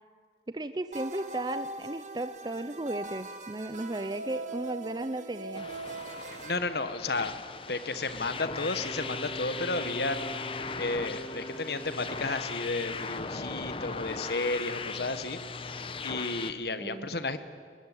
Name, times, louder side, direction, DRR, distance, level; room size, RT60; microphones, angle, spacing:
voice 1, 0.5-5.7 16.8-17.1, right 2 dB, 25° right, 11 dB, 0.6 m, -35 dB
sound 1, 0.9-6.6, right 2 dB, 45° right, 1.6 m, -41 dB
sound 2, 5.5-16.5, left 4 dB, 30° left, 0.9 m, -38 dB
voice 2, 6.2-7.4 7.7-17.4, left 3 dB, 65° left, 11 dB, 1.4 m, -33 dB
Wind instrument woodwind instrument, 8.7-12.5, right 1 dB, 10° left, 2.9 m, -43 dB
23.0 x 19.5 x 9.9 m, 2.1 s
head